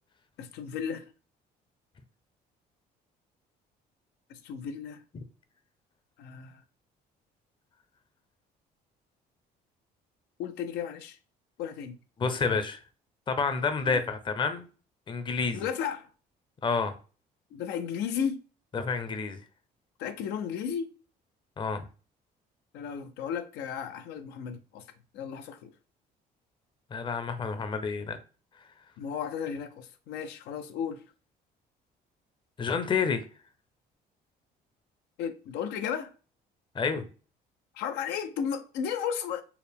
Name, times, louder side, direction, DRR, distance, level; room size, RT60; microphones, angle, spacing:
voice 1, 0.4-1.1 4.3-5.0 6.2-6.6 10.4-11.2 11.6-12.0 13.8-14.0 15.5-16.1 17.5-18.4 20.0-21.0 22.7-24.9 25.1-25.7 29.0-31.0 35.2-36.1 37.7-39.4, left 7 dB, 85° left, 0.5 m, -34 dB
voice 2, 12.2-12.8 13.3-14.6 15.1-15.7 16.6-16.9 18.7-19.4 21.6-21.8 26.9-28.2 32.6-33.2 36.7-37.0, left 5 dB, 30° left, 0.6 m, -29 dB
4.6 x 2.1 x 3.4 m
cardioid pair, 110°, 17 cm